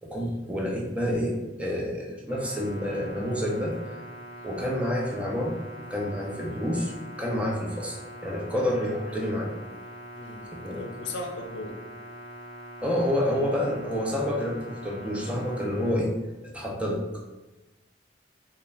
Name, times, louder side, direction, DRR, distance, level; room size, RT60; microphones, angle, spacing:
voice 1, 0.0-3.8 4.4-5.6 5.9-8.0 8.2-9.5 10.5-10.8 12.8-16.1 16.4-17.1, equal, 5° right, -2 dB, 0.4 m, -28 dB
sound 1, 2.3-15.9, equal, 55° left, 0.7 m, -43 dB
voice 2, 10.2-10.5 10.7-11.8, left 2 dB, 90° left, 3 dB, 0.4 m, -37 dB
2.4 x 2.1 x 3.1 m, 1.1 s
head